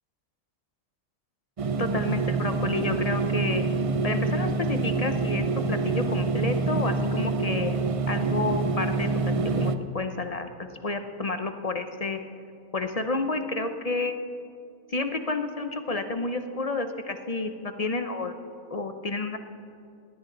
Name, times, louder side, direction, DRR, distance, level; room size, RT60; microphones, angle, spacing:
sound 1, 1.6-9.8, right 3 dB, 55° right, 0.3 m, -26 dB
voice 1, 1.8-3.6 4.0-7.8 8.1-9.1 9.4-12.2 12.7-14.2 14.9-18.3 18.7-19.4, left 3 dB, 35° left, 7 dB, 0.7 m, -30 dB
19.0 x 18.5 x 3.9 m, 2.4 s
omnidirectional pair, 1.4 m